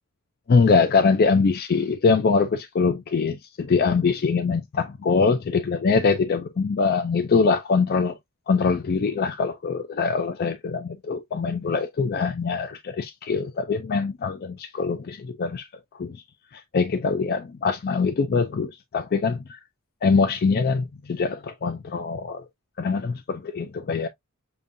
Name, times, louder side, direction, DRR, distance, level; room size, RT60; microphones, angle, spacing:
voice 1, 0.5-8.2 8.5-15.7 16.0-16.2 16.5-19.6 20.0-22.5 22.8-24.1, left 4 dB, 45° left, 0.4 m, -23 dB
6.8 x 2.6 x 2.5 m
head